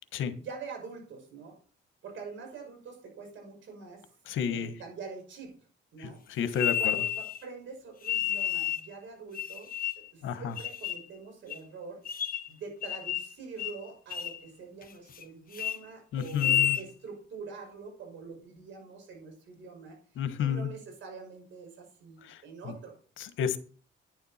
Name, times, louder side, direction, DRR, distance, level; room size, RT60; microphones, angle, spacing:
voice 1, 0.4-1.6 2.0-4.0 4.5-5.5 5.9-6.2 6.8-9.7 10.1-12.0 12.5-20.0 20.4-22.9, right 5 dB, 70° right, 4 dB, 5.8 m, -45 dB
voice 2, 4.3-4.7 6.0-7.0 10.2-10.5 16.1-16.8 20.2-20.7 22.2-22.7 23.2-23.6, left 8 dB, 80° left, 11 dB, 1.3 m, -31 dB
sound 1, 6.5-7.4 8.0-8.9 9.3-10.1 10.6-11.0 11.5-11.6 12.0-12.5 12.8-13.3 13.6-13.8 14.1-14.4 14.8-15.2 15.5-15.8 16.3-16.8, left 9 dB, 45° left, 1.1 m, -30 dB
10.5 x 10.0 x 4.3 m, 0.40 s
cardioid pair, 90°, 20 cm